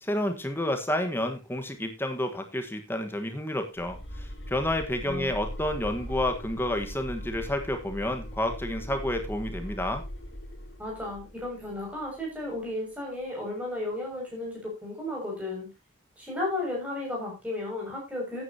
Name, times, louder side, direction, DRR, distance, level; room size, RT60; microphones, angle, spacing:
voice 1, 0.0-10.0, left 1 dB, 10° left, 6 dB, 1.4 m, -30 dB
sound 1, 3.8-12.7, equal, 70° left, 2.7 m, -40 dB
voice 2, 10.8-15.7 16.2-18.4, left 2 dB, 5° right, -2 dB, 6.4 m, -34 dB
14.0 x 9.9 x 2.9 m, 0.24 s
head